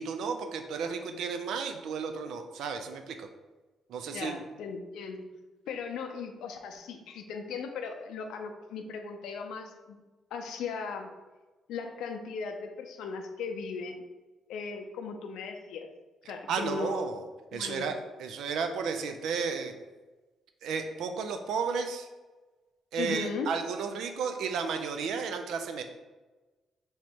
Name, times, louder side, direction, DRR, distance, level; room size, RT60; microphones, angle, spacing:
voice 1, 0.0-3.3 3.9-4.4 16.5-17.3 17.5-19.8 20.6-22.1 22.9-25.8, right 5 dB, 75° right, 7 dB, 0.4 m, -33 dB
voice 2, 4.1-5.3 5.7-10.0 10.3-11.1 11.7-14.0 14.5-15.9 16.3-17.0 17.5-17.9 23.0-23.5, left 5 dB, 85° left, 4 dB, 0.5 m, -37 dB
3.1 x 2.9 x 4.5 m, 1.2 s
cardioid pair, 90°, 0 cm